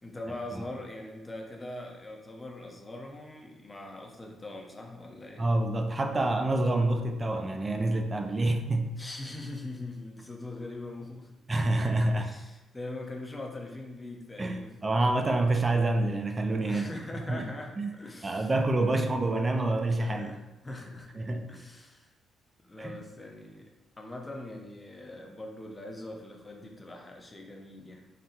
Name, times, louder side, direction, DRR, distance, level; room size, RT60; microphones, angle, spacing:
voice 1, 0.0-5.5 9.0-11.4 12.2-14.7 16.7-19.0 20.0-21.1 21.5-22.1 22.6-23.7 24.0-28.1, left 2 dB, 20° left, 1 dB, 0.7 m, -42 dB
voice 2, 5.4-8.9 11.5-12.3 14.4-16.9 17.3-17.5 17.8-17.9 18.2-20.3 21.1-21.5 22.8-23.0, right 2 dB, 25° right, 5 dB, 0.5 m, -27 dB
3.9 x 2.2 x 4.3 m, 1.0 s
cardioid pair, 90°, 0 cm